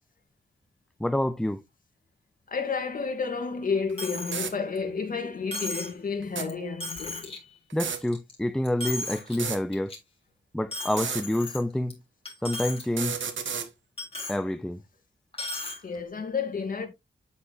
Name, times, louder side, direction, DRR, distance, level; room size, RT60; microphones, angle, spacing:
voice 1, 1.0-1.6 7.7-9.9 10.5-12.0 12.4-13.2 14.3-14.8, left 1 dB, 5° left, 0.3 m, -28 dB
voice 2, 2.5-7.6 15.8-16.9, left 5 dB, 45° left, 2.4 m, -31 dB
sound 1, 3.9-4.0 4.3-4.5 6.2-6.5 7.7-8.0 9.3-9.6 10.9-11.2 12.8-13.7, right 6 dB, 80° right, 1.4 m, -32 dB
Coin (dropping), 4.0-4.4 4.8-4.9 5.5-6.0 6.5-6.6 6.8-7.4 7.8-8.3 8.6-9.4 9.7-10.0 10.7-11.9 12.3-12.8 13.2-13.3 14.0-14.4 15.3-15.8, left 1 dB, 30° left, 3.7 m, -35 dB
8.6 x 8.2 x 2.5 m
wide cardioid pair, 135°, 19 cm